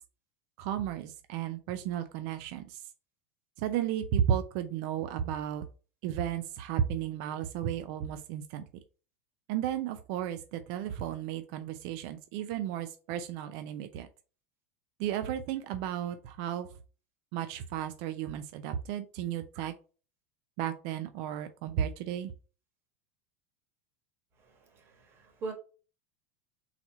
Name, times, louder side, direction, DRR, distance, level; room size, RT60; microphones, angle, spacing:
voice 1, 0.6-2.8 3.6-5.7 6.0-8.6 9.5-14.1 15.0-16.7 17.3-19.7 20.6-22.3, right 10 dB, 60° right, 0.5 m, -33 dB
voice 2, 24.7-25.5, right 3 dB, 35° right, 1.4 m, -40 dB
4.0 x 2.9 x 4.4 m
supercardioid pair, 135°, 7 cm